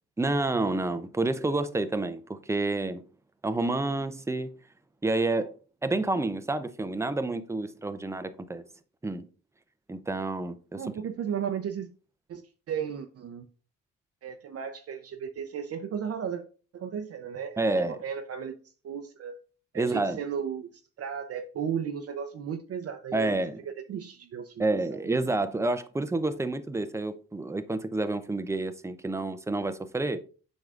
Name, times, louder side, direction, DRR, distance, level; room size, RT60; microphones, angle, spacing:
voice 1, 0.2-3.0 3.4-4.5 5.0-5.5 5.8-8.6 9.0-9.3 9.9-10.9 17.6-18.0 19.7-20.2 23.1-23.6 24.6-30.2, right 2 dB, 10° right, 0.6 m, -29 dB
voice 2, 10.8-11.9 12.3-13.4 14.2-16.4 16.7-18.5 18.8-19.4 19.7-20.7 21.0-24.7, right 7 dB, 50° right, 0.6 m, -35 dB
7.6 x 5.2 x 2.5 m
cardioid pair, 90°, 30 cm